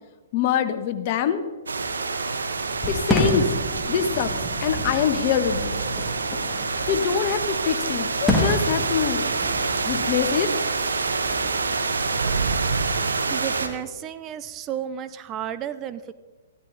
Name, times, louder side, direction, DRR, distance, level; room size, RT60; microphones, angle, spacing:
voice 1, 0.3-1.4 2.9-3.5 3.9-4.3 4.6-5.8 6.9-9.2 9.8-10.5, left 8 dB, 45° left, 9 dB, 1.3 m, -24 dB
sound 1, 1.7-13.7, right 4 dB, 85° right, 1.4 m, -27 dB
Fireworks, 2.7-12.6, left 1 dB, 5° left, 2.7 m, -30 dB
voice 2, 13.3-16.1, right 10 dB, 30° right, 13 dB, 0.6 m, -32 dB
15.0 x 13.0 x 4.1 m, 1.4 s
hypercardioid pair, 125°, 0 cm